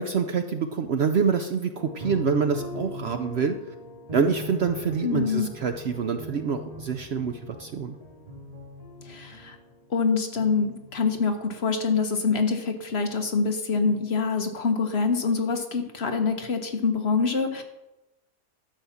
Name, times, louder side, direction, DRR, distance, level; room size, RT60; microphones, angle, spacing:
voice 1, 0.0-3.6 4.1-8.0, right 6 dB, 60° right, 7 dB, 0.7 m, -26 dB
sound 1, 1.7-9.8 10.4-11.5, equal, 25° right, 2.4 m, -40 dB
voice 2, 5.0-5.5 9.1-9.6 9.9-17.6, left 5 dB, 50° left, 5 dB, 1.2 m, -25 dB
12.0 x 5.6 x 7.1 m, 0.99 s
omnidirectional pair, 1.5 m